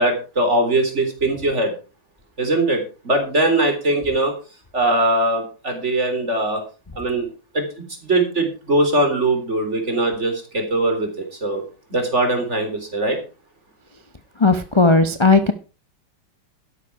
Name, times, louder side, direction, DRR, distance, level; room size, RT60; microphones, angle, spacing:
voice 1, 0.0-1.7 2.4-4.3 4.7-6.6 7.0-7.3 7.5-11.6 11.9-13.2, right 2 dB, 35° right, 5 dB, 3.9 m, -21 dB
voice 2, 14.4-15.5, left 3 dB, 25° left, 8 dB, 0.6 m, -15 dB
12.5 x 10.5 x 4.8 m, 0.33 s
omnidirectional pair, 2.1 m